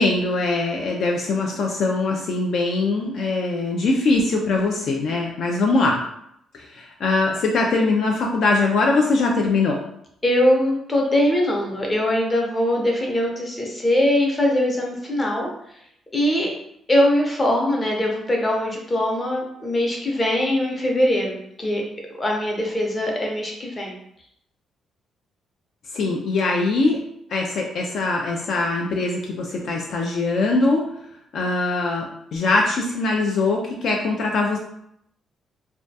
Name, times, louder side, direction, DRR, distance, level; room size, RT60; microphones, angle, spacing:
voice 1, 0.0-6.0 6.5-9.8 25.9-27.0 27.3-30.9 31.3-34.6, left 3 dB, 65° left, 0 dB, 0.3 m, -22 dB
voice 2, 10.2-15.5 16.1-16.5 16.9-21.8 22.2-23.9, left 1 dB, 25° left, -1 dB, 0.7 m, -21 dB
2.2 x 2.2 x 2.6 m, 0.74 s
cardioid pair, 90°, 0 cm